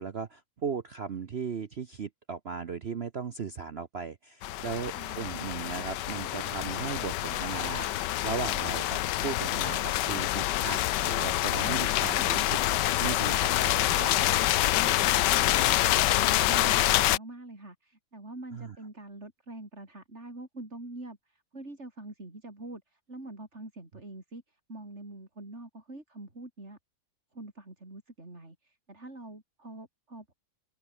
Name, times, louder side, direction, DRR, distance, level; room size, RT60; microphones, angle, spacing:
voice 1, 0.0-14.3 18.5-18.8, right 6 dB, 70° right, 0.6 m, -37 dB
sound 1, 4.4-17.2, left 14 dB, 70° left, 1.1 m, -27 dB
voice 2, 4.9-5.3 11.6-12.3 14.7-15.0 15.2-26.8 27.3-30.3, right 2 dB, 30° right, 5.4 m, -45 dB
open air
omnidirectional pair, 2.3 m